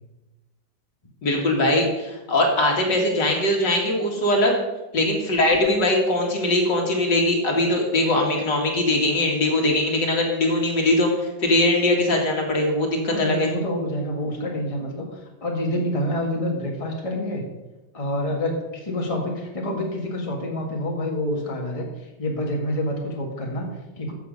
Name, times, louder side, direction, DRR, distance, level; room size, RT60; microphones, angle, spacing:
voice 1, 1.2-4.5 4.9-11.1 11.4-13.5, left 1 dB, 60° left, 0 dB, 2.7 m, -21 dB
voice 2, 13.1-15.1 15.4-17.4 17.9-21.9 22.2-24.1, left 1 dB, 20° left, 0 dB, 1.7 m, -27 dB
13.5 x 7.2 x 5.3 m, 1.1 s
omnidirectional pair, 2.1 m